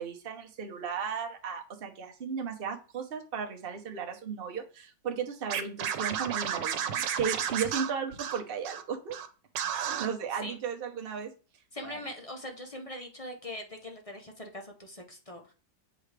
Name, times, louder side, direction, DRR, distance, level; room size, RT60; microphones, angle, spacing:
voice 1, 0.0-9.2 9.7-11.3 11.8-12.0, right 6 dB, 40° right, 2 dB, 1.1 m, -35 dB
Scratching (performance technique), 5.5-8.8 9.1-9.3 9.5-10.1, right 9 dB, 90° right, 1.5 m, -32 dB
voice 2, 11.7-15.5, left 1 dB, 35° left, 2 dB, 0.6 m, -42 dB
7.9 x 4.8 x 3.3 m, 0.36 s
omnidirectional pair, 1.9 m